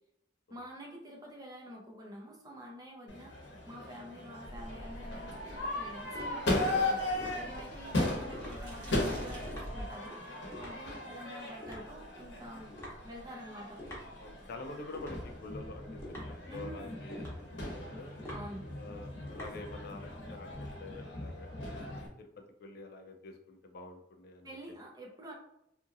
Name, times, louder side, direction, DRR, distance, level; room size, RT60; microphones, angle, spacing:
voice 1, 0.5-3.3 3.7-12.7 13.0-13.8 16.5-17.0 18.3-18.7 24.4-25.3, equal, 20° right, -1 dB, 0.6 m, -48 dB
Crowd / Fireworks, 3.1-22.1, left 2 dB, 80° left, 0.8 m, -38 dB
sound 1, 4.4-10.1, equal, 75° right, 1.1 m, -47 dB
sound 2, 6.1-20.2, left 1 dB, 15° left, 0.9 m, -49 dB
voice 2, 14.2-16.2 16.4-18.1 18.7-21.5 22.2-22.3 22.6-24.5, left 2 dB, 60° left, 4 dB, 0.4 m, -47 dB
2.8 x 2.6 x 2.5 m, 0.79 s
head